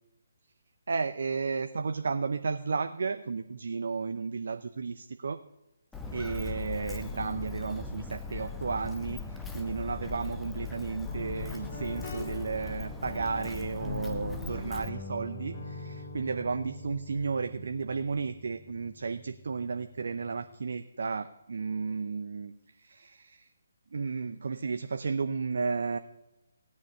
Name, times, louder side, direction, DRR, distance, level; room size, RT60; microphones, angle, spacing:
voice 1, 0.9-5.4 6.1-23.5 23.9-26.0, right 4 dB, 55° right, 9 dB, 0.6 m, -33 dB
Walk footsteps, 5.9-14.9, left 4 dB, 5° left, 1.0 m, -39 dB
Guitar, 11.1-20.5, left 2 dB, 40° left, 4.0 m, -43 dB
16.5 x 9.6 x 5.4 m, 0.92 s
figure-of-eight pair, 140°, 0 cm